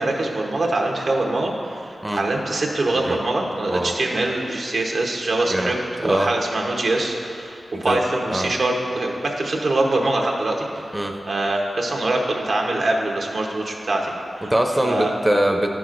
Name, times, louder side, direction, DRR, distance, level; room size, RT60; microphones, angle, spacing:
voice 1, 0.0-5.8 6.0-10.9 11.3-14.5 14.8-15.1, right 2 dB, 70° right, 0 dB, 0.8 m, -23 dB
voice 2, 3.7-4.0 5.5-6.3 7.9-8.0 8.3-8.5 10.9-11.1 14.5-15.7, right 1 dB, 15° right, 3 dB, 0.6 m, -22 dB
10.5 x 6.0 x 2.5 m, 2.6 s
cardioid pair, 45°, 0 cm